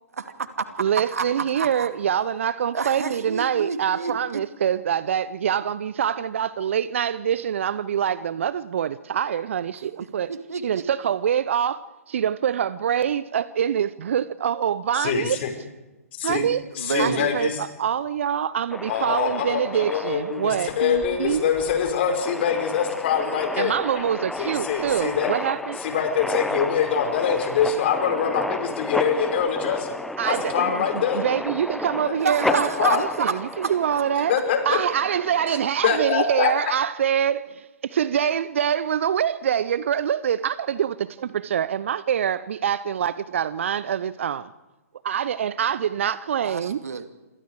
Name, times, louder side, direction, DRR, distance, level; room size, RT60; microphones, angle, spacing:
voice 1, 0.2-0.7 1.1-1.9 2.7-4.4 10.3-10.8 16.4-16.5 16.8-17.4 32.2-34.0 46.4-47.0, right 5 dB, 70° right, 2.5 m, -29 dB
voice 2, 0.8-10.3 10.6-15.4 16.2-16.7 17.0-21.5 23.6-25.8 30.2-34.4 34.6-44.5 45.0-46.8, right 9 dB, 55° right, 0.9 m, -25 dB
voice 3, 15.0-15.5 16.2-16.4 16.8-17.6 18.9-24.0 24.4-25.3 25.8-29.9 30.2-31.2 32.5-33.0 34.3-34.8 35.8-36.5, left 7 dB, 45° left, 5.6 m, -24 dB
sound 1, 18.7-35.6, left 1 dB, 5° left, 1.0 m, -33 dB
27.5 x 27.5 x 5.0 m
figure-of-eight pair, 125°, 8 cm